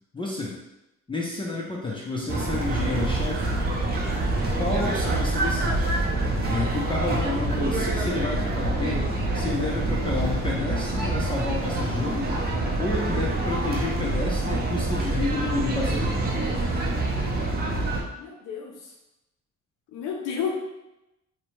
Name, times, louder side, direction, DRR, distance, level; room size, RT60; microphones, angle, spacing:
voice 1, 0.1-0.6 1.1-3.6 4.6-6.0 6.5-12.3 12.8-16.3, left 3 dB, 15° left, -3 dB, 0.4 m, -30 dB
sound 1, 2.3-18.0, right 2 dB, 30° right, 0.5 m, -26 dB
voice 2, 18.2-18.7 19.9-20.5, left 7 dB, 85° left, 0 dB, 0.5 m, -31 dB
2.7 x 2.0 x 2.9 m, 0.92 s
cardioid pair, 90°, 30 cm